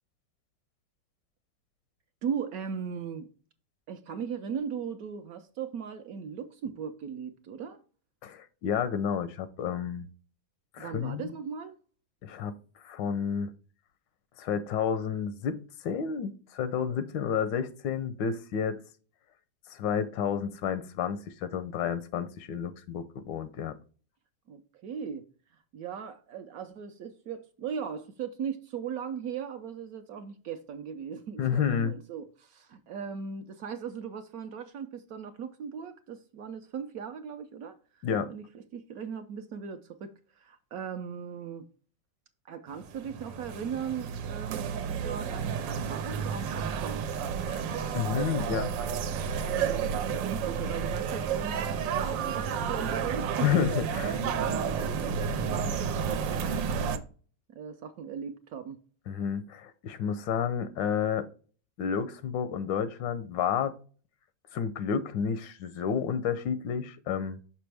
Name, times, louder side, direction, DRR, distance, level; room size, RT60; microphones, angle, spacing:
voice 1, 2.2-3.3 3.9-7.8 10.8-11.8 24.5-25.3 25.7-41.7 42.5-47.1 48.3-49.0 49.4-53.5 54.3-57.1 57.5-58.8, right 7 dB, 70° right, 0.9 m, -38 dB
voice 2, 8.2-10.1 10.7-11.2 12.2-12.5 12.8-13.5 14.4-18.8 19.7-23.8 31.4-31.9 38.0-38.3 47.5-47.7 47.9-48.7 49.3-49.5 53.4-54.2 59.1-61.3 61.8-63.7 64.5-67.4, left 7 dB, 85° left, 1.3 m, -30 dB
sound 1, 42.8-57.0, right 7 dB, 90° right, 1.4 m, -31 dB
6.0 x 5.5 x 3.3 m
omnidirectional pair, 1.9 m